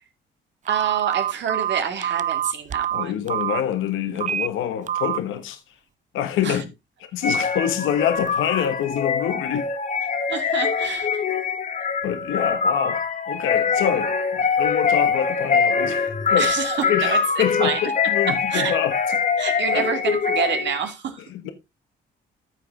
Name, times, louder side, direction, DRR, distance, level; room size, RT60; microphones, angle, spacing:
Telephone, 0.7-3.6 4.2-4.5 4.9-5.2, right 10 dB, 40° right, 0.5 m, -25 dB
voice 1, 0.7-3.3 6.4-6.6 10.3-11.2 16.4-17.9 18.3-18.8 19.4-21.2, right 7 dB, 65° right, 2.6 m, -27 dB
voice 2, 2.9-5.6 6.1-6.7 7.1-9.7 12.0-16.5 16.9-18.9 19.7-19.9 21.3-21.5, left 10 dB, 90° left, 1.4 m, -26 dB
sound 1, 7.2-20.9, left 5 dB, 40° left, 1.9 m, -23 dB
14.0 x 5.2 x 3.7 m
cardioid pair, 90°, 20 cm